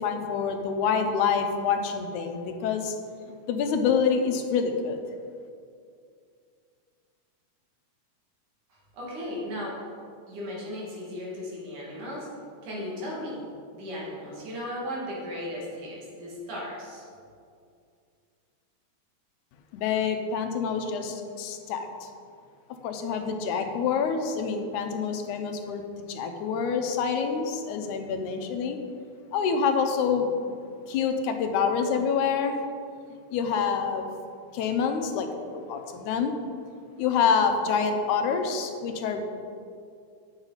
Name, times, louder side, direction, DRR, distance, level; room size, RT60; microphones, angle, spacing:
voice 1, 0.0-3.0 3.5-5.0 19.7-22.1 22.8-25.8 26.1-28.8 29.3-30.6 30.9-32.6 33.3-34.1 34.5-36.3 37.0-39.2, left 6 dB, 90° left, 5 dB, 2.2 m, -27 dB
voice 2, 8.7-9.8 10.3-12.3 12.6-13.4 13.7-17.1, left 1 dB, 90° right, -5 dB, 3.7 m, -36 dB
9.6 x 7.3 x 4.1 m, 2.3 s
omnidirectional pair, 3.4 m